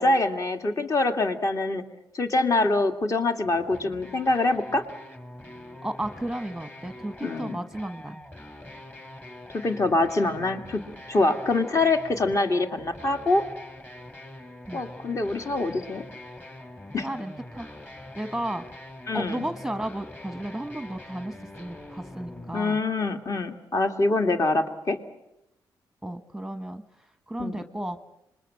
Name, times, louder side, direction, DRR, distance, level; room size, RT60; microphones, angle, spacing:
voice 1, 0.0-1.8 2.1-4.8 7.2-7.6 9.6-10.8 11.1-13.4 14.7-16.0 16.9-17.1 19.1-19.4 22.5-25.0 27.4-27.6, left 2 dB, 40° left, 5 dB, 2.2 m, -24 dB
sound 1, 3.4-22.6, left 1 dB, 25° left, 3.6 m, -44 dB
voice 2, 5.8-8.2 14.7-14.8 17.0-17.7 18.1-18.7 19.1-22.8 26.0-28.1, right 1 dB, 5° right, 8 dB, 1.1 m, -34 dB
26.0 x 21.5 x 7.6 m, 0.87 s
cardioid pair, 65°, 8 cm